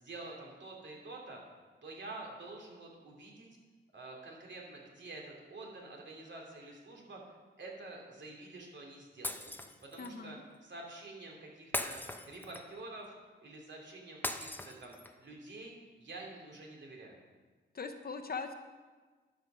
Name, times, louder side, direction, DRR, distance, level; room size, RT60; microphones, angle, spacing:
voice 1, 0.0-1.4 1.8-3.5 3.9-9.5 9.8-13.1 13.4-15.0 15.2-17.2, right 2 dB, 60° right, -1 dB, 2.7 m, -48 dB
Shatter, 9.2-10.1 11.7-12.8 14.2-15.2, left 1 dB, 10° left, 0.8 m, -39 dB
voice 2, 10.0-10.4 17.7-18.5, left 4 dB, 45° left, 7 dB, 0.9 m, -40 dB
11.5 x 5.8 x 6.2 m, 1.4 s
cardioid pair, 80°, 21 cm